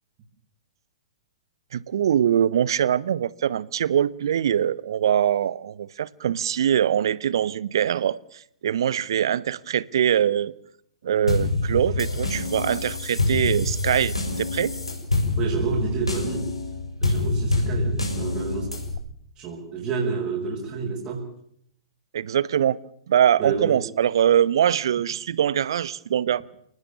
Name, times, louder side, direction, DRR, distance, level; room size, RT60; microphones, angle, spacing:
voice 1, 1.7-10.5 11.0-14.7 22.1-22.8 23.1-26.4, right 9 dB, 55° right, 1.1 m, -23 dB
sound 1, 11.3-19.0, left 2 dB, 85° left, 7.2 m, -26 dB
voice 2, 15.4-16.5 17.0-18.7 19.4-21.3 23.4-23.8, right 5 dB, 30° right, 6.6 m, -29 dB
29.0 x 19.5 x 7.0 m
figure-of-eight pair, 110°, 3 cm